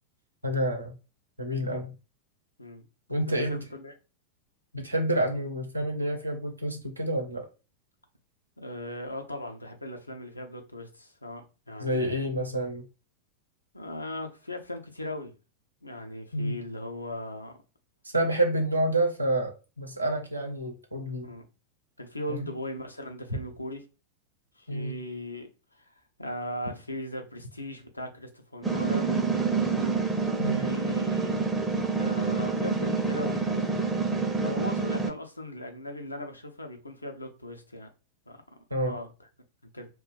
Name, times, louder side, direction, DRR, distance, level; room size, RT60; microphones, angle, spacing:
voice 1, 0.4-1.0 1.4-2.0 3.1-3.6 4.7-7.5 11.8-12.8 16.3-16.6 18.1-21.3 22.3-22.5 24.7-25.0 30.4-30.6 38.7-39.0, right 1 dB, 85° right, 0.7 m, -28 dB
voice 2, 3.5-3.9 8.6-12.3 13.7-15.4 15.8-17.5 21.2-21.4 22.0-23.8 24.6-29.3 30.5-31.4 32.0-33.8 34.1-37.9 38.3-38.4 38.8-39.1 39.7-39.9, left 1 dB, 85° left, 0.6 m, -38 dB
sound 1, 28.6-35.1, right 4 dB, 10° right, 0.6 m, -27 dB
2.4 x 2.3 x 3.8 m
figure-of-eight pair, 90°, 0 cm